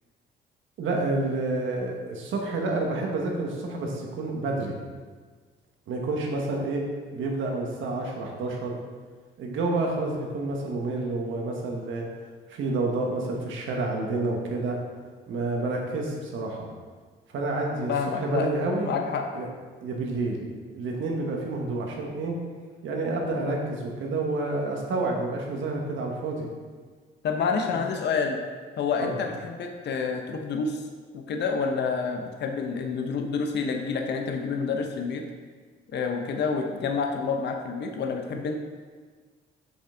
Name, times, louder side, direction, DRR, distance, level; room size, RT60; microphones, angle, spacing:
voice 1, 0.8-4.8 5.9-6.8 7.1-8.7 9.4-12.1 12.5-14.8 15.3-16.7 17.3-18.9 19.3-19.5 19.8-20.4 20.7-22.4 22.8-26.5 27.7-27.8 29.0-29.1, right 2 dB, 75° right, 0 dB, 1.4 m, -29 dB
voice 2, 17.9-18.5 18.8-19.2 27.2-28.4 28.8-30.8 31.1-35.2 35.9-38.5, left 5 dB, 60° left, 3 dB, 0.8 m, -28 dB
6.9 x 5.3 x 3.8 m, 1.5 s
cardioid pair, 90°, 20 cm